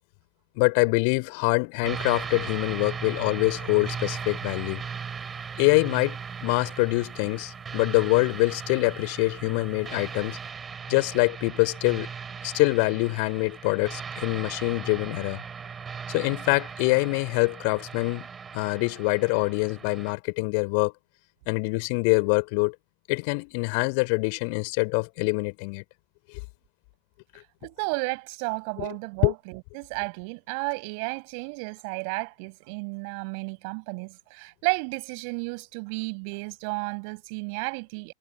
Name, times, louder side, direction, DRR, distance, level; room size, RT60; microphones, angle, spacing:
voice 1, 0.6-4.8 5.6-10.4 10.9-12.1 12.4-15.4 16.1-18.3 18.5-20.9 21.5-22.7 23.1-25.8 28.8-28.9 29.2-29.3, left 35 dB, 45° left, 3.1 m, -25 dB
sound 1, 1.8-20.1, right 6 dB, 20° right, 4.2 m, -38 dB
voice 2, 27.6-38.1, right 37 dB, 45° right, 5.7 m, -33 dB
figure-of-eight pair, 90°, 0 cm